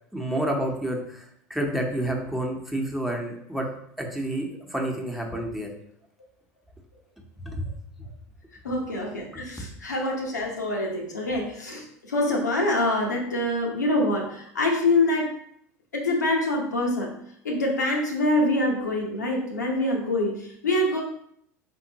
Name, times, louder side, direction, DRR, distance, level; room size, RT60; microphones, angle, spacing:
voice 1, 0.1-1.2 1.5-3.6 4.0-5.7 7.5-7.6, right 1 dB, ahead, 0 dB, 1.0 m, -29 dB
voice 2, 8.6-15.3 15.9-17.1 17.4-21.0, left 1 dB, 90° left, 0 dB, 0.9 m, -25 dB
4.2 x 3.6 x 2.9 m, 0.69 s
hypercardioid pair, 80°, 9 cm